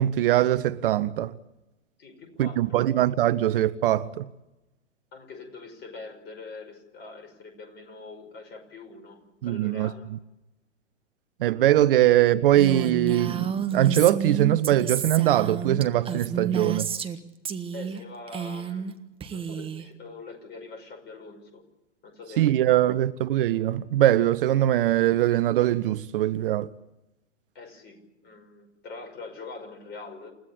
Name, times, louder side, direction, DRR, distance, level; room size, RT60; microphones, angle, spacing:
voice 1, 0.0-1.3 2.4-4.3 9.4-9.9 11.4-16.9 22.4-26.7, right 13 dB, 50° right, 0.7 m, -22 dB
voice 2, 2.0-2.8 5.1-10.0 17.7-18.9 19.3-21.6 22.0-22.6 27.5-30.3, left 3 dB, 30° left, 5.5 m, -43 dB
Female speech woman speaking, 12.6-17.2 17.5-18.0 18.3-18.9 19.2-19.9, right 7 dB, 15° right, 1.5 m, -31 dB
29.0 x 15.0 x 8.6 m
figure-of-eight pair, 100°, 36 cm